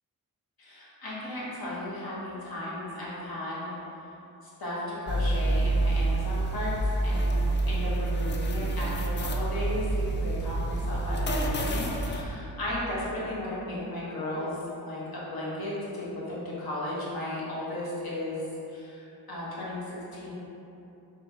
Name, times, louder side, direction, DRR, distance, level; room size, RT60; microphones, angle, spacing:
voice 1, 0.6-3.8 4.4-6.7 7.0-7.3 7.7-20.3, left 1 dB, 75° left, -7 dB, 1.1 m, -35 dB
sound 1, 5.1-12.2, right 2 dB, 30° left, 0.4 m, -27 dB
4.4 x 3.0 x 2.7 m, 2.9 s
wide cardioid pair, 95°, 37 cm